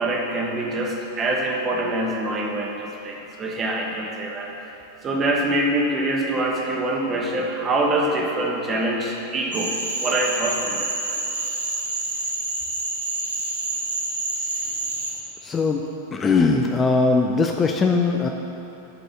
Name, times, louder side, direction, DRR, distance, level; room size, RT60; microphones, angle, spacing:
voice 1, 0.0-4.5 5.0-10.9, right 1 dB, 25° right, -1 dB, 1.3 m, -25 dB
Cricket / Frog, 9.5-15.1, right 2 dB, 70° right, 1.2 m, -28 dB
voice 2, 15.4-15.8 16.1-18.3, left 4 dB, 20° left, 3 dB, 0.5 m, -20 dB
7.5 x 5.4 x 7.4 m, 2.9 s
figure-of-eight pair, 90°, 0 cm